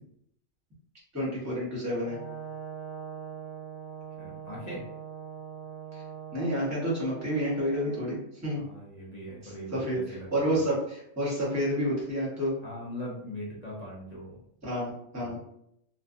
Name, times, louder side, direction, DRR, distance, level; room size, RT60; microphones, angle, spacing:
voice 1, 1.1-2.2 5.9-6.0 6.3-8.2 8.4-8.6 9.4-12.5 14.6-15.4, equal, 15° right, -5 dB, 0.9 m, -29 dB
Brass instrument, 2.0-8.2, right 7 dB, 85° left, 0.9 m, -42 dB
voice 2, 4.2-4.8 8.6-10.6 12.6-14.4 15.2-15.4, equal, 45° left, -5 dB, 0.6 m, -41 dB
2.4 x 2.2 x 2.5 m, 0.73 s
omnidirectional pair, 1.1 m